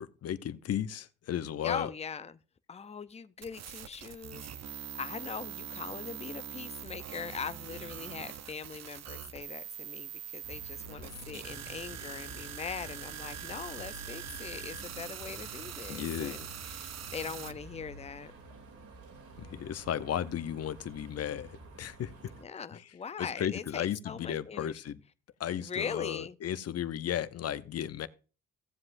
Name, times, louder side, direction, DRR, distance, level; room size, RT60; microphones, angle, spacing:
voice 1, 0.0-1.9 15.9-16.4 19.4-21.5 21.8-22.3 22.7-22.8 23.2-25.0 25.4-28.1, left 10 dB, 55° left, 0.8 m, -35 dB
voice 2, 1.6-2.4 2.7-18.3 22.4-24.8 25.6-26.4, left 6 dB, 20° left, 0.6 m, -41 dB
sound 1, 3.4-17.5, right 10 dB, 60° right, 0.8 m, -43 dB
sound 2, 10.4-22.4, right 2 dB, 75° right, 2.9 m, -50 dB
16.5 x 7.7 x 2.6 m
cardioid pair, 90°, 30 cm